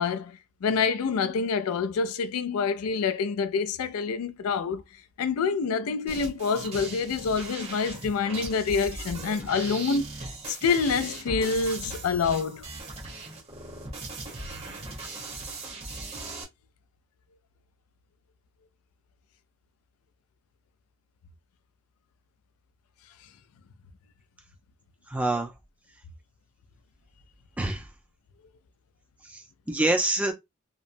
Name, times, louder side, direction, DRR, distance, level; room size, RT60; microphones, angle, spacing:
voice 1, 0.0-4.8 5.2-10.1 10.5-12.7, left 5 dB, 85° left, 0.4 m, -27 dB
sound 1, 6.1-16.4, right 2 dB, 30° right, 0.9 m, -39 dB
voice 2, 25.1-25.5 27.6-27.9 29.2-30.3, right 2 dB, 5° right, 0.4 m, -26 dB
2.8 x 2.1 x 2.5 m
head